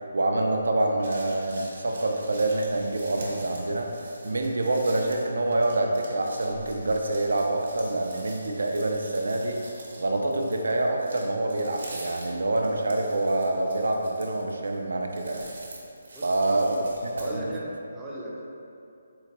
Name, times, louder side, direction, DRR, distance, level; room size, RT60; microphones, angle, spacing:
voice 1, 0.1-3.9 4.2-9.6 10.0-15.5 16.2-16.8 17.2-17.4, right 2 dB, 80° right, 2 dB, 0.4 m, -26 dB
sound 1, 0.8-17.4, right 2 dB, 60° right, 0.7 m, -46 dB
voice 2, 16.1-16.6 17.2-18.4, equal, 5° right, -7 dB, 0.3 m, -37 dB
3.8 x 2.1 x 2.8 m, 2.6 s
hypercardioid pair, 165°, 0 cm